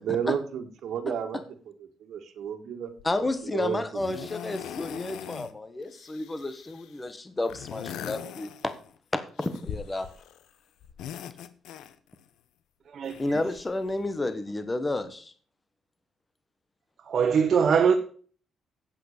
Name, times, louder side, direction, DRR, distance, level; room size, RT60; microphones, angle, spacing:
voice 1, 0.0-1.4 2.0-2.9 3.5-3.8 4.2-4.3, right 8 dB, 70° right, 5 dB, 1.8 m, -31 dB
voice 2, 1.1-1.4 3.0-8.7 9.1-10.1 13.2-15.3, left 2 dB, 20° left, 10 dB, 1.3 m, -31 dB
sound 1, 3.0-3.3 4.0-5.5 5.8-7.0 7.4-9.0 9.4-10.5 10.8-12.2 13.0-14.1 15.0-15.1, left 9 dB, 85° left, 0.9 m, -41 dB
voice 3, 12.9-13.4 17.1-17.9, right 6 dB, 55° right, 6 dB, 1.3 m, -22 dB
8.7 x 8.1 x 6.6 m, 0.43 s
cardioid pair, 90°, 0 cm